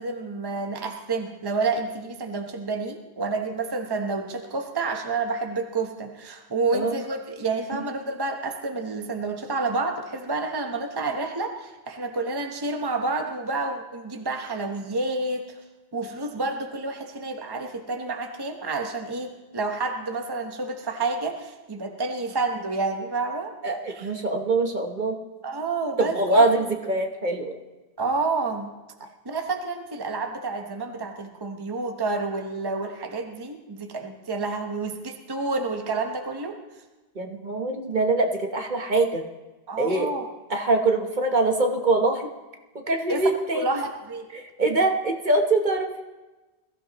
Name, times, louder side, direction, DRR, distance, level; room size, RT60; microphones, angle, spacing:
voice 1, 0.0-15.4 15.9-23.5 23.9-24.1 25.4-26.4 28.0-28.7 29.2-36.6 39.7-40.2 43.1-43.2 43.5-44.3, right 3 dB, 25° right, 4 dB, 1.0 m, -29 dB
voice 2, 23.6-25.2 26.0-27.6 37.2-39.2 39.8-40.1 40.5-42.3 42.9-43.6 44.3-46.0, right 2 dB, 45° right, 3 dB, 1.2 m, -23 dB
21.5 x 14.5 x 3.0 m, 1.2 s
omnidirectional pair, 1.1 m